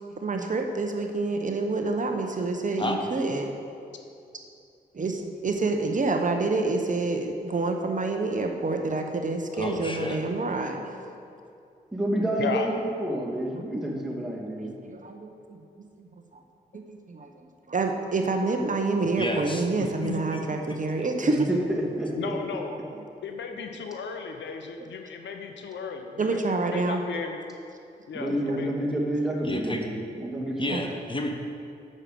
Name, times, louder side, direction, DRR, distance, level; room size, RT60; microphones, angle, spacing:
voice 1, 0.1-3.5 4.9-10.8 14.6-15.3 15.8-16.1 16.7-17.3 17.7-21.4 26.2-27.0 28.3-28.6 30.7-30.8, right 3 dB, 45° right, 4 dB, 0.9 m, -28 dB
voice 2, 9.5-10.2 19.2-21.1 29.4-29.9 30.6-31.3, left 1 dB, 25° left, 3 dB, 1.2 m, -32 dB
voice 3, 11.9-14.7 21.2-22.4 28.1-30.7, right 1 dB, 5° right, -4 dB, 2.5 m, -29 dB
voice 4, 22.2-22.7 23.2-26.3 26.7-27.4 28.1-28.7, left 5 dB, 75° left, 5 dB, 0.8 m, -35 dB
6.5 x 6.5 x 7.6 m, 2.5 s
supercardioid pair, 45°, 19 cm